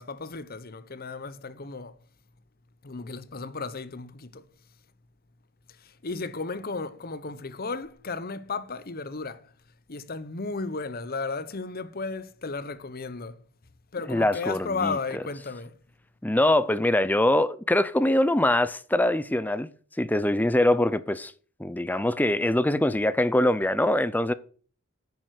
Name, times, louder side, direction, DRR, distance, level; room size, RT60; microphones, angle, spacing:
voice 1, 0.0-2.0 2.8-4.4 5.7-9.5 9.9-13.4 13.9-15.8, left 4 dB, 45° left, 0.9 m, -34 dB
voice 2, 14.1-15.0 16.2-19.7 20.0-21.3 21.6-24.3, left 1 dB, 10° left, 0.5 m, -23 dB
9.8 x 7.6 x 6.5 m
head